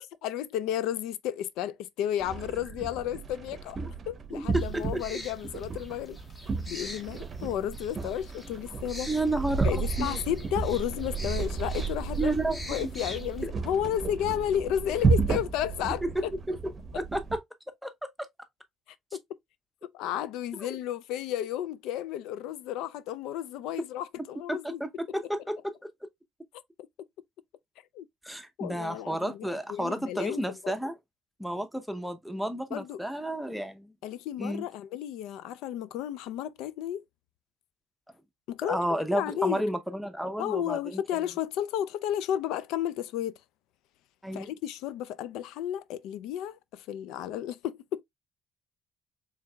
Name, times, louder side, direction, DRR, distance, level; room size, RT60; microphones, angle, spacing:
voice 1, 0.2-3.8 4.1-6.2 6.7-9.1 9.6-12.3 12.7-16.3 19.1-19.2 19.8-24.8 27.9-28.1 28.6-30.7 32.7-33.0 34.0-37.0 38.5-39.6 40.4-43.3 44.3-48.0, left 11 dB, 90° left, 0.3 m, -32 dB
sound 1, 2.2-17.4, right 4 dB, 35° right, 0.7 m, -32 dB
voice 2, 4.3-5.0 9.1-10.2 12.2-12.9 16.1-16.6 16.9-17.4 17.8-17.9 24.5-25.9 28.2-30.9 31.4-33.9 34.4-34.6 38.7-41.0 44.2-44.5, right 1 dB, ahead, 0.6 m, -31 dB
sound 2, 4.5-13.5, left 1 dB, 20° left, 0.9 m, -45 dB
4.5 x 3.4 x 2.2 m
cardioid pair, 115°, 0 cm